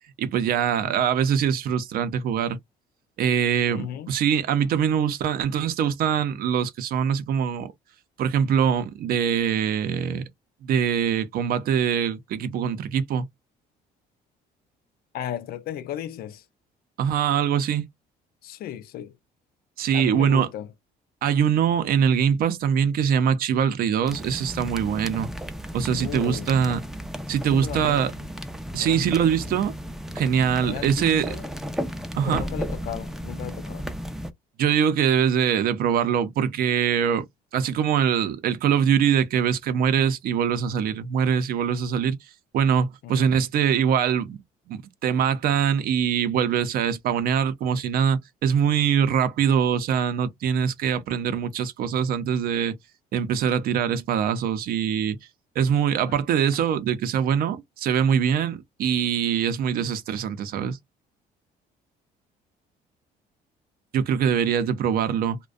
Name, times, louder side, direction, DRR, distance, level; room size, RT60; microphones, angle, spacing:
voice 1, 0.2-2.6 3.2-7.7 8.2-10.3 10.6-13.2 17.0-17.8 19.8-20.5 21.2-25.3 25.7-26.8 27.3-28.1 28.7-29.7 30.1-31.4 32.1-32.4 34.6-37.3 37.5-42.2 42.5-44.4 44.7-52.8 53.1-55.2 55.6-60.8 63.9-65.4, right 8 dB, 60° right, 0.5 m, -23 dB
voice 2, 3.7-4.1 15.1-16.4 18.4-19.1 19.9-20.7 26.0-26.5 27.5-28.0 28.8-29.2 30.6-31.5 32.3-33.9 43.0-43.4 56.0-56.2, left 11 dB, 65° left, 0.4 m, -35 dB
sound 1, 24.1-34.3, equal, ahead, 0.3 m, -34 dB
2.4 x 2.1 x 2.4 m
cardioid pair, 110°, 17 cm